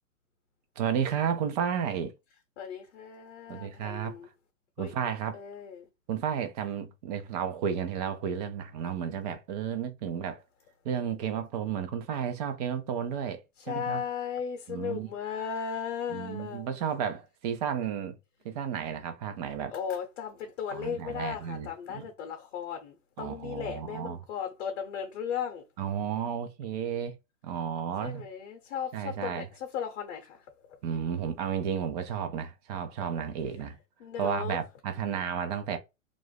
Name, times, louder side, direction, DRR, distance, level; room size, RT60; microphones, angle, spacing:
voice 1, 0.8-2.1 3.5-4.2 4.8-5.4 6.1-10.4 10.8-14.0 14.7-15.1 16.1-18.2 18.4-19.7 20.7-22.1 23.2-24.2 25.8-27.2 27.4-28.2 28.9-29.5 30.8-33.8 34.2-35.8, right 8 dB, 35° right, 0.4 m, -32 dB
voice 2, 2.6-4.3 4.8-4.9 5.3-5.8 13.7-16.8 19.7-25.6 28.0-30.4 33.0-33.1 34.0-34.6, left 8 dB, 55° left, 0.8 m, -36 dB
2.5 x 2.0 x 3.2 m
hypercardioid pair, 120°, 40 cm